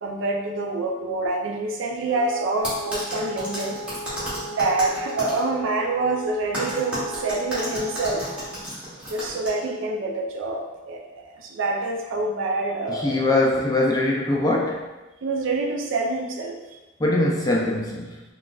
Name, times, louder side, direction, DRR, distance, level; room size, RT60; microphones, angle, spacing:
voice 1, 0.0-3.8 4.5-8.3 9.1-13.4 15.2-16.8, right 2 dB, 75° right, 2 dB, 0.4 m, -26 dB
Wind instrument woodwind instrument, 2.1-8.7, equal, 85° left, 0.5 m, -37 dB
sound 1, 2.6-5.4 6.5-9.5, equal, 5° right, 1.0 m, -32 dB
voice 2, 12.9-14.9 17.0-18.2, left 2 dB, 20° left, -2 dB, 0.4 m, -22 dB
4.0 x 2.4 x 2.3 m, 1.1 s
head